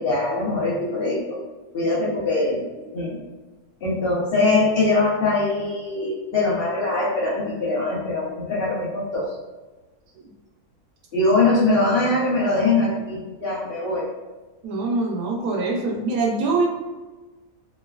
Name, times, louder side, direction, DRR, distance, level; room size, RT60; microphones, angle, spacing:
voice 1, 0.0-1.4 1.7-3.2 3.8-9.3 11.1-14.1, left 2 dB, 55° left, -5 dB, 0.7 m, -22 dB
voice 2, 14.6-16.7, right 3 dB, 85° right, 0 dB, 1.1 m, -23 dB
3.1 x 2.2 x 2.3 m, 1.2 s
omnidirectional pair, 1.6 m